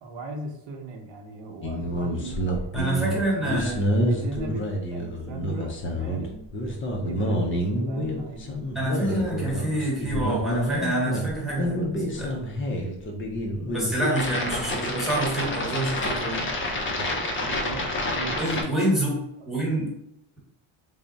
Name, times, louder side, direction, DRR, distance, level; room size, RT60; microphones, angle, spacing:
voice 1, 0.0-2.5 2.9-3.7 4.1-6.4 7.0-8.6 11.1-12.0 13.9-14.7 17.4-18.4, right 2 dB, 60° right, 3 dB, 0.8 m, -39 dB
sound 1, 1.6-18.6, equal, 25° left, 0.4 m, -28 dB
voice 2, 2.7-3.8 8.7-12.4 13.7-16.5 18.4-19.9, right 1 dB, ahead, -5 dB, 1.0 m, -27 dB
3.4 x 2.1 x 3.9 m, 0.82 s
cardioid pair, 165°, 49 cm